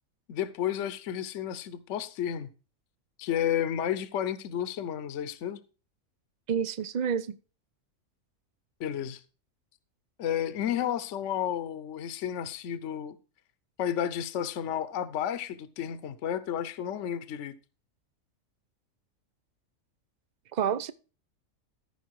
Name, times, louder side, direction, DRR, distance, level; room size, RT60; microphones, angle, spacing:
voice 1, 0.3-2.5 3.2-5.6 8.8-9.2 10.2-13.2 13.8-17.5, left 10 dB, 65° left, 1.0 m, -32 dB
voice 2, 6.5-7.4 20.5-20.9, right 7 dB, 85° right, 0.4 m, -29 dB
13.5 x 5.6 x 4.6 m
omnidirectional pair, 1.5 m